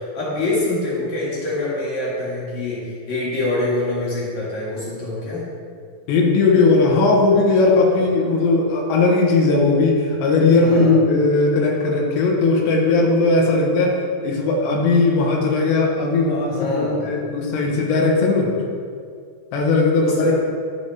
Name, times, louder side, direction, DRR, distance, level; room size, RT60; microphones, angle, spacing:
voice 1, 0.0-5.5 10.6-11.0 16.5-17.1 20.0-20.3, left 2 dB, 45° left, -7 dB, 3.3 m, -25 dB
voice 2, 6.1-18.5 19.5-20.3, left 3 dB, 90° left, 0 dB, 3.5 m, -18 dB
11.0 x 7.0 x 3.5 m, 2.2 s
omnidirectional pair, 5.0 m